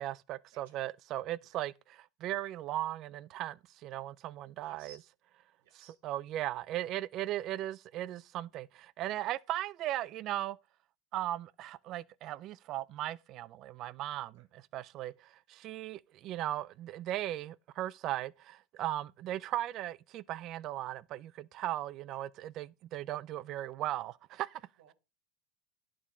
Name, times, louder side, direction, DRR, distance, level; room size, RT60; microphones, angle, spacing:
voice 1, 0.0-1.7 2.2-4.9 6.0-10.6 11.1-24.6, right 14 dB, 35° right, 0.3 m, -37 dB
voice 2, 4.6-5.0 5.6-6.0 14.3-14.5 15.0-15.2 22.1-22.2 24.8-24.9, right 7 dB, 65° right, 1.4 m, -59 dB
11.0 x 3.7 x 4.2 m
supercardioid pair, 150°, 0 cm